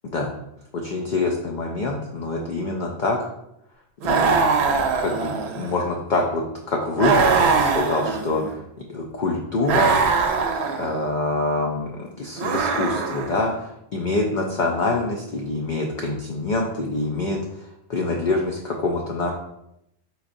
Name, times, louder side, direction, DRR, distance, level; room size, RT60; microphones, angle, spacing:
voice 1, 0.7-3.2 4.0-8.6 8.9-9.9 10.8-19.3, left 2 dB, 55° left, 1 dB, 0.5 m, -25 dB
sound 1, 4.0-5.8 7.0-8.5 9.6-11.0 12.4-13.5, right 5 dB, 70° right, 0.8 m, -22 dB
4.4 x 4.0 x 2.5 m, 0.81 s
omnidirectional pair, 1.2 m